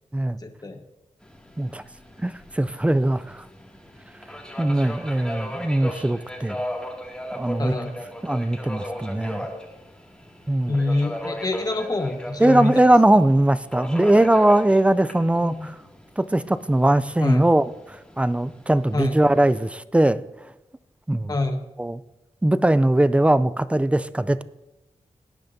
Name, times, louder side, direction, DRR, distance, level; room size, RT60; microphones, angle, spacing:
voice 1, 0.4-0.8 7.6-7.9 10.7-12.8 15.3-15.7 17.2-17.5 18.9-19.2 21.3-21.6, left 2 dB, 30° left, 5 dB, 1.3 m, -25 dB
Subway metro underground, 1.2-19.7, left 1 dB, 5° left, 2.3 m, -37 dB
voice 2, 2.2-3.4 4.6-6.6 7.3-7.7 8.2-9.5 10.5-10.8 12.4-15.8 16.2-20.2 21.1-21.3 21.8-22.0 22.4-24.4, right 1 dB, 10° right, 15 dB, 0.4 m, -20 dB
19.0 x 10.5 x 2.7 m, 0.98 s
wide cardioid pair, 80°, 12 cm